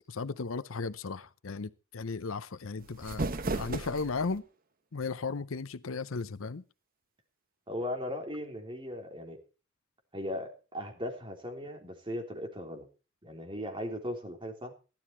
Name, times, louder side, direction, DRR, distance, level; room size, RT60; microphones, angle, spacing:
voice 1, 0.1-3.3 3.5-4.4 4.9-6.6, left 4 dB, 80° left, 0.7 m, -35 dB
sound 1, 2.8-4.4, right 2 dB, 45° right, 1.1 m, -35 dB
voice 2, 7.7-9.4 10.1-12.9 13.2-14.7, left 1 dB, 25° right, 3.4 m, -38 dB
16.0 x 12.0 x 4.4 m
head